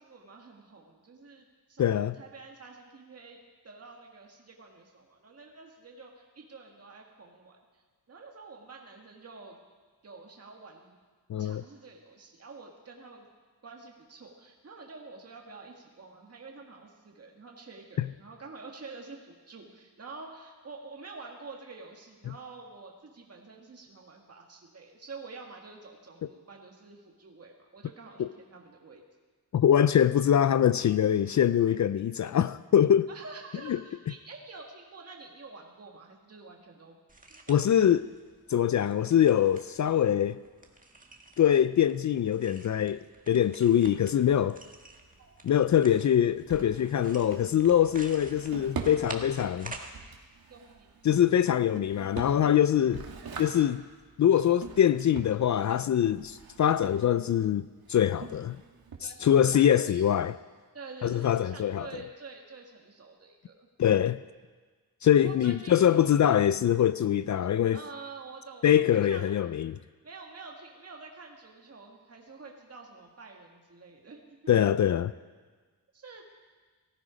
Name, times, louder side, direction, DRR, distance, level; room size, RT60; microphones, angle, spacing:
voice 1, 0.0-1.9 2.2-7.8 8.1-9.6 10.0-11.0 11.4-13.3 13.6-29.0 33.1-37.0 37.3-37.6 45.2-45.3 50.5-50.9 59.0-60.0 60.7-63.7 65.2-65.8 67.7-69.4 70.0-74.4 75.9-76.2, right 4 dB, 40° right, 1.9 m, -48 dB
voice 2, 1.8-2.2 11.3-11.6 18.0-18.1 22.3-22.4 28.2-28.3 29.5-33.1 33.7-33.8 37.5-38.1 38.5-40.4 41.4-44.6 45.4-49.8 51.0-53.1 53.4-53.8 54.2-58.6 59.0-60.4 61.0-62.0 63.8-64.2 65.0-67.8 68.6-69.8 74.5-75.1, left 10 dB, 50° left, 0.4 m, -24 dB
sound 1, 37.1-49.9, right 2 dB, 20° right, 1.6 m, -49 dB
Drawer open or close, 44.4-59.5, right 5 dB, 70° right, 2.1 m, -45 dB
18.0 x 14.5 x 5.1 m
wide cardioid pair, 105°, 38 cm